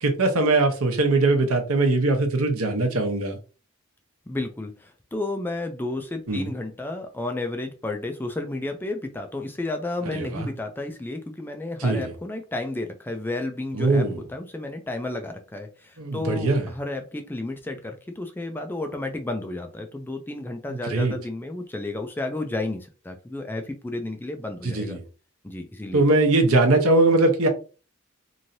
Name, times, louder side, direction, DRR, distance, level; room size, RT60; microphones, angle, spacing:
voice 1, 0.0-3.4 6.3-6.5 10.1-10.5 11.8-12.1 13.7-14.2 16.0-16.6 20.8-21.1 24.6-25.0 25.9-27.5, right 2 dB, 75° right, 3 dB, 0.8 m, -21 dB
voice 2, 4.3-25.0 25.4-26.0, left 2 dB, 10° left, 5 dB, 0.3 m, -32 dB
3.1 x 2.6 x 2.6 m, 0.34 s
head